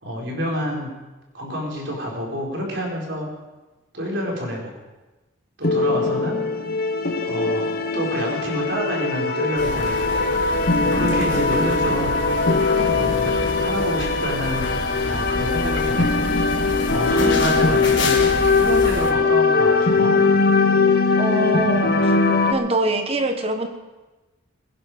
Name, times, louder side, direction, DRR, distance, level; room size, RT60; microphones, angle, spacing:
voice 1, 0.0-0.9 1.3-3.3 3.9-4.7 5.6-6.4 7.2-10.1 10.8-12.1 12.9-14.7 15.0-16.1 16.8-18.2 18.5-20.1, equal, 60° right, -2 dB, 4.4 m, -28 dB
sound 1, 5.6-22.5, left 3 dB, 45° left, 1.0 m, -20 dB
sound 2, 9.6-19.1, left 2 dB, 60° left, 1.7 m, -29 dB
voice 2, 17.2-17.8 21.2-22.2 22.5-23.7, right 2 dB, 30° right, 6 dB, 1.2 m, -24 dB
22.0 x 10.5 x 5.0 m, 1.1 s
head